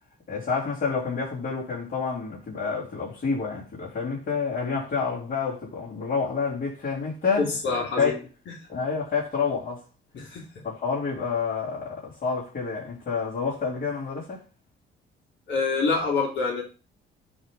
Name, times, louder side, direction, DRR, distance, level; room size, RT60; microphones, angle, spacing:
voice 1, 0.3-8.1 8.7-9.8 10.6-14.4, left 5 dB, 45° left, 3.6 m, -28 dB
voice 2, 7.4-8.2 10.1-10.4 15.5-16.6, left 4 dB, 65° left, 2.5 m, -26 dB
9.9 x 3.6 x 3.9 m
cardioid pair, 90°, 20 cm